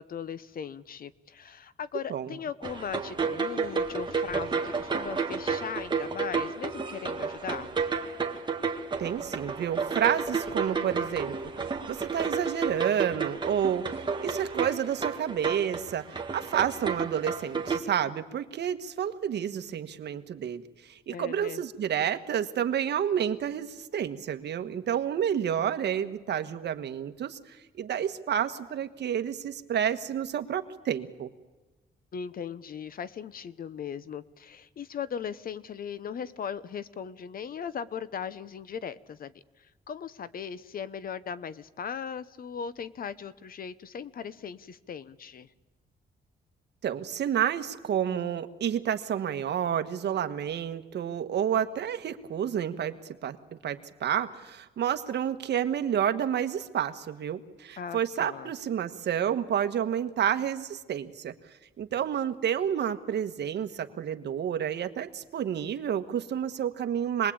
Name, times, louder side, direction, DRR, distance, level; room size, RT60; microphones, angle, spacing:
voice 1, 0.0-7.7 21.1-21.6 32.1-45.5 57.8-58.5, left 7 dB, 50° left, 16 dB, 0.9 m, -38 dB
sound 1, 2.6-17.8, right 5 dB, 25° right, 2.0 m, -31 dB
voice 2, 9.0-11.5 11.9-31.3 46.8-52.9 53.2-53.4 53.6-61.3 61.8-67.3, right 9 dB, 70° right, 9 dB, 1.5 m, -30 dB
26.5 x 20.5 x 8.7 m, 1.2 s
wide cardioid pair, 140°, 18 cm